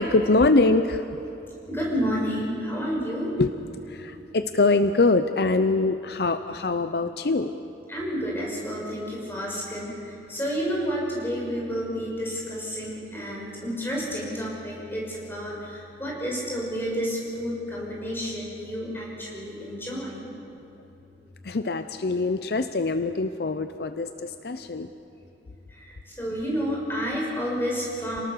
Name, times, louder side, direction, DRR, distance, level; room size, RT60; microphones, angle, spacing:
voice 1, 0.0-1.2 3.4-3.5 3.9-7.5 21.4-24.9, left 3 dB, 60° left, 10 dB, 0.6 m, -23 dB
voice 2, 1.3-3.3 7.9-20.3 25.7-28.2, equal, 15° left, -3 dB, 5.8 m, -30 dB
28.0 x 18.5 x 6.7 m, 2.9 s
head